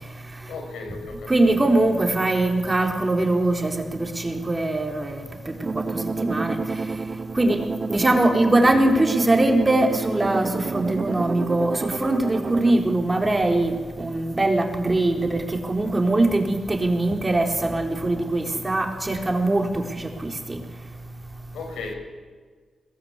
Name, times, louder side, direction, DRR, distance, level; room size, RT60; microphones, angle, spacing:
voice 1, 0.5-1.5 21.5-21.9, left 4 dB, 80° left, 4 dB, 5.1 m, -35 dB
voice 2, 1.3-6.6 7.3-7.6 7.9-20.6, right 2 dB, 25° right, 3 dB, 4.3 m, -22 dB
sound 1, 5.6-12.7, right 4 dB, 45° right, 1.7 m, -29 dB
22.0 x 19.5 x 8.4 m, 1.5 s
supercardioid pair, 40°, 0 cm